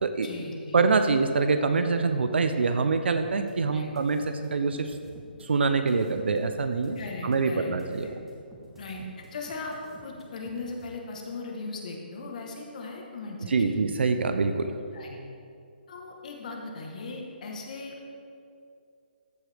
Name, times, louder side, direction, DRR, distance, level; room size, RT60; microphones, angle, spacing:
voice 1, 0.2-0.8 3.7-3.9 7.0-7.7 8.8-9.0 9.3-9.7 10.0-13.8 14.9-15.2 15.9-17.9, left 3 dB, 45° left, 1 dB, 1.2 m, -38 dB
voice 2, 0.7-5.0 5.4-8.2 13.5-14.7, right 4 dB, 85° right, 8 dB, 0.5 m, -25 dB
sound 1, 3.2-10.9, right 1 dB, 5° right, 0.8 m, -51 dB
13.5 x 4.8 x 3.4 m, 2.5 s
hypercardioid pair, 170°, 6 cm